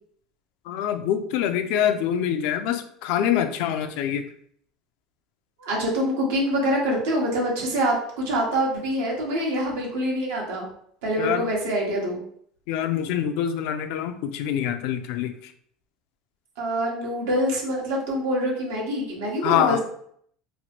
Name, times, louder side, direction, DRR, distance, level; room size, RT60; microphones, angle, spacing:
voice 1, 0.7-4.3 11.2-11.5 12.7-15.5 19.4-19.8, left 10 dB, 70° left, 9 dB, 0.3 m, -25 dB
voice 2, 5.6-10.7 11.0-12.2 16.6-19.8, equal, 85° right, -2 dB, 1.1 m, -25 dB
3.0 x 2.1 x 2.9 m, 0.64 s
supercardioid pair, 115°, 0 cm